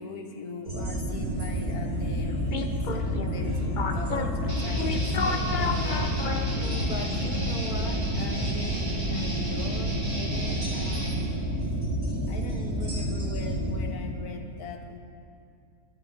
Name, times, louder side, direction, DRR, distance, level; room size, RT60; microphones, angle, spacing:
voice 1, 0.0-6.5 6.8-11.9 12.3-15.0, left 4 dB, 70° left, 5 dB, 1.7 m, -41 dB
sound 1, 0.7-13.9, right 1 dB, 75° right, 4.6 m, -30 dB
sound 2, 1.9-7.0, left 6 dB, 45° left, 0.6 m, -32 dB
Guitar, 4.5-11.2, right 1 dB, 35° right, 3.7 m, -34 dB
13.0 x 8.2 x 9.5 m, 2.4 s
omnidirectional pair, 1.7 m